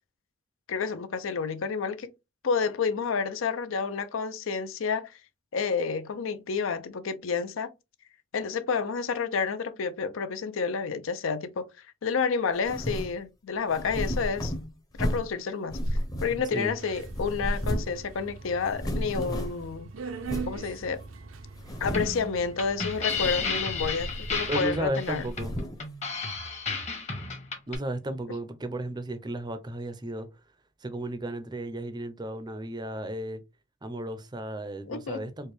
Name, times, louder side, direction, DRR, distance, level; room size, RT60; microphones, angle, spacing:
voice 1, 0.7-2.1 2.4-5.2 5.5-7.7 8.3-11.7 12.0-14.5 15.0-15.8 16.2-19.9 20.5-21.0 21.8-25.3 34.9-35.2, left 5 dB, 80° left, 0.5 m, -30 dB
sound 1, 12.6-13.2 13.7-15.4 15.7-16.7 17.0-18.0 18.3-18.4 18.6-19.7 20.2-20.6 21.1-21.2 21.6-22.2 23.0-23.5 23.8-24.7 25.0-25.8, equal, 20° left, 0.7 m, -33 dB
Subway metro underground, 16.8-24.9, right 4 dB, 85° right, 0.6 m, -42 dB
sound 2, 21.9-27.8, left 5 dB, 35° left, 1.0 m, -32 dB
voice 2, 24.5-25.6 27.7-30.3 30.8-33.4 33.8-35.5, right 1 dB, 20° right, 0.5 m, -34 dB
4.4 x 2.2 x 3.2 m
head